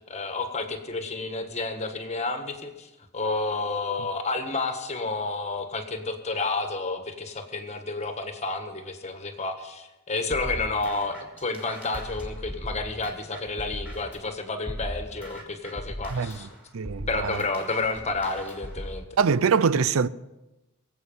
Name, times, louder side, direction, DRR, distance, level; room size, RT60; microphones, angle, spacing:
voice 1, 0.0-16.5 17.1-19.1, left 3 dB, 30° left, 1.5 m, -30 dB
sound 1, 10.3-14.3 14.7-19.0, equal, 5° right, 2.9 m, -38 dB
voice 2, 16.1-16.5 16.7-17.4 19.2-20.1, right 6 dB, 80° right, 0.5 m, -23 dB
23.0 x 8.1 x 5.5 m
head